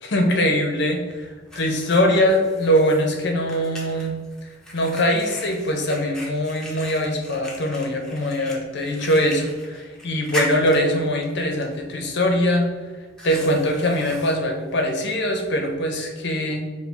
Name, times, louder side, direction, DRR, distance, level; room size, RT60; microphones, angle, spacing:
voice 1, 0.0-4.1 4.7-12.7 13.2-16.6, equal, 65° left, 3 dB, 0.7 m, -22 dB
Fire, 0.8-15.7, left 1 dB, 5° left, 0.7 m, -39 dB
5.0 x 2.2 x 3.3 m, 1.3 s
head